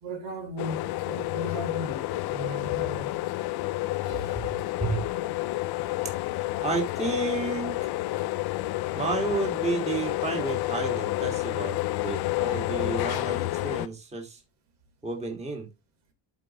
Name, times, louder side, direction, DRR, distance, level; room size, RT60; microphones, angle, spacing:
voice 1, 0.0-3.3 4.0-4.5 8.2-8.3, equal, 80° right, 3.6 m, -37 dB
sound 1, 0.6-13.9, left 17 dB, 55° left, 0.5 m, -30 dB
voice 2, 6.6-7.9 8.9-14.4 15.0-15.7, right 3 dB, 15° right, 1.8 m, -31 dB
12.5 x 4.7 x 3.0 m
cardioid pair, 145°, 48 cm